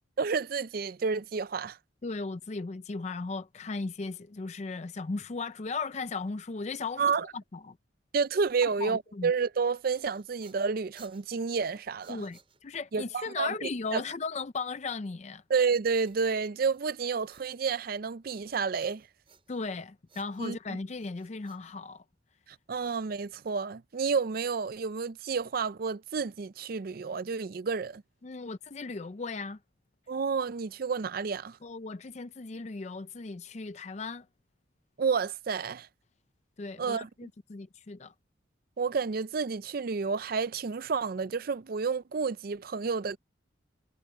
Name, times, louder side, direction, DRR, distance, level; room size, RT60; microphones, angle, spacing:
voice 1, 0.2-1.8 7.0-7.3 8.1-12.2 12.9-14.0 15.5-19.0 20.4-20.6 22.7-28.0 30.1-31.6 35.0-35.9 36.8-37.3 38.8-43.2, right 5 dB, 50° right, 0.4 m, -30 dB
voice 2, 2.0-7.8 8.6-9.3 12.1-15.4 19.5-22.0 28.2-29.6 31.6-34.3 36.6-38.1, left 4 dB, 35° left, 0.4 m, -37 dB
sound 1, 9.6-13.0 16.1-17.9 18.2-19.8 20.1-22.3, right 5 dB, 30° right, 5.8 m, -61 dB
head